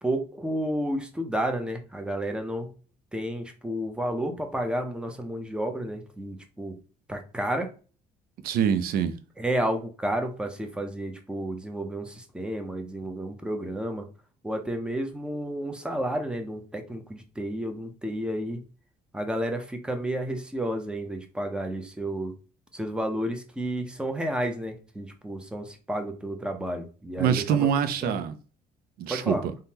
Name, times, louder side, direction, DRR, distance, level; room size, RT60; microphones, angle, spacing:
voice 1, 0.0-2.7 3.1-6.8 7.1-7.7 9.4-14.1 14.4-18.6 19.1-22.3 22.7-27.7 28.0-28.2 29.1-29.4, right 1 dB, 5° right, 0.5 m, -31 dB
voice 2, 8.4-9.1 27.2-28.3 29.0-29.4, right 8 dB, 65° right, 0.4 m, -24 dB
3.5 x 2.1 x 2.8 m
cardioid pair, 110°, 17 cm